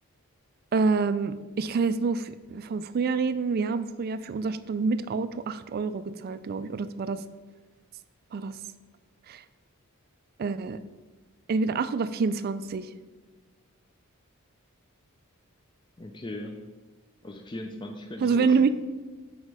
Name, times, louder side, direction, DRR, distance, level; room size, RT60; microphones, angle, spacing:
voice 1, 0.7-7.2 8.3-8.6 9.3-9.4 10.4-10.8 11.5-12.9 18.2-18.7, right 4 dB, 45° right, 13 dB, 0.3 m, -27 dB
voice 2, 16.0-16.6 17.2-18.7, left 1 dB, 20° left, 4 dB, 0.4 m, -38 dB
6.4 x 5.1 x 4.8 m, 1.3 s
head